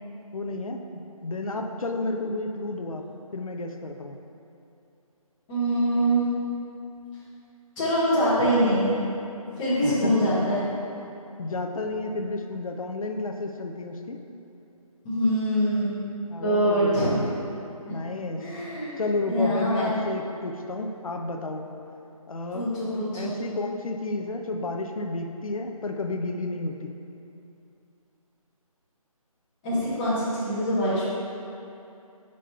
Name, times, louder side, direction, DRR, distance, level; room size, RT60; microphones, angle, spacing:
voice 1, 0.3-3.1 3.3-4.2 9.5-10.4 11.4-14.2 16.3-17.1 17.9-18.5 19.0-21.7 22.3-22.7 23.1-26.9, left 2 dB, 70° left, 4 dB, 0.6 m, -31 dB
voice 2, 5.5-6.3 7.8-9.0 9.6-10.7 15.0-16.0 16.4-17.3 17.9-18.0 18.4-19.0 19.3-20.0 22.5-23.3 29.6-31.1, equal, 10° left, -13 dB, 1.1 m, -24 dB
4.9 x 4.0 x 5.5 m, 2.7 s
figure-of-eight pair, 165°, 19 cm